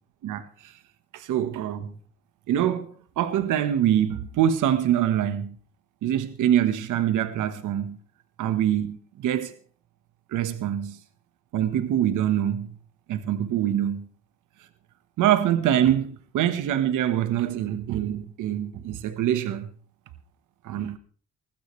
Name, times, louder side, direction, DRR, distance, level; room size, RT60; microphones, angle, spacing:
voice 1, 0.2-0.7 1.1-1.9 2.5-2.9 3.2-5.5 6.0-8.0 8.4-9.5 10.3-11.0 11.5-12.7 13.1-14.1 15.2-19.7 20.6-21.0, right 10 dB, 85° right, 1.3 m, -24 dB
20.0 x 15.0 x 3.2 m
cardioid pair, 90°, 30 cm